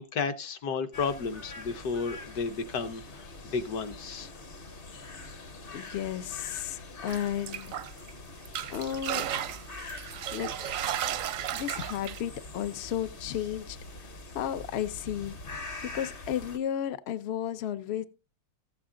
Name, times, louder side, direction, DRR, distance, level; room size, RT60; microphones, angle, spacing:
voice 1, 0.0-4.3 4.9-5.1 8.6-8.7, left 5 dB, 65° left, 1.3 m, -33 dB
sound 1, 0.9-16.6, left 2 dB, 45° left, 0.8 m, -44 dB
voice 2, 5.1-5.4 5.7-7.8 8.7-9.3 10.3-10.5 11.5-15.4 15.8-18.0, left 10 dB, 90° left, 0.5 m, -34 dB
sound 2, 7.1-8.1 8.5-12.2, right 10 dB, 65° right, 0.8 m, -34 dB
14.0 x 7.2 x 3.7 m
omnidirectional pair, 2.0 m